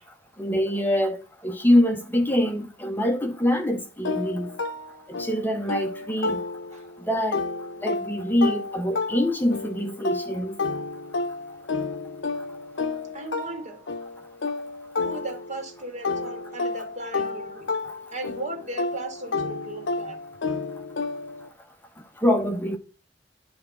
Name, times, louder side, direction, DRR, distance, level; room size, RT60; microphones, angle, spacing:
voice 1, 0.4-4.5 5.1-6.4 7.0-7.4 7.8-10.6 22.2-22.8, equal, 10° left, 0.8 m, -24 dB
sound 1, 4.0-6.9 7.3-15.7 16.0-21.5, left 3 dB, 85° left, 0.8 m, -31 dB
voice 2, 13.1-13.8 15.0-17.7 18.1-20.2, right 1 dB, 40° right, 2.0 m, -36 dB
10.0 x 3.4 x 5.3 m
head